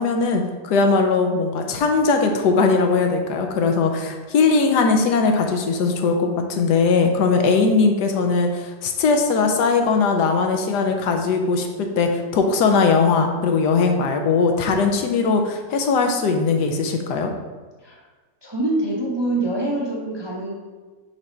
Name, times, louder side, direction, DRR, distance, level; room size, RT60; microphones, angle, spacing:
voice 1, 0.0-17.3, left 4 dB, 80° left, 4 dB, 1.3 m, -20 dB
voice 2, 18.4-20.6, right 2 dB, 25° right, -4 dB, 0.6 m, -25 dB
4.8 x 4.3 x 5.1 m, 1.3 s
omnidirectional pair, 1.8 m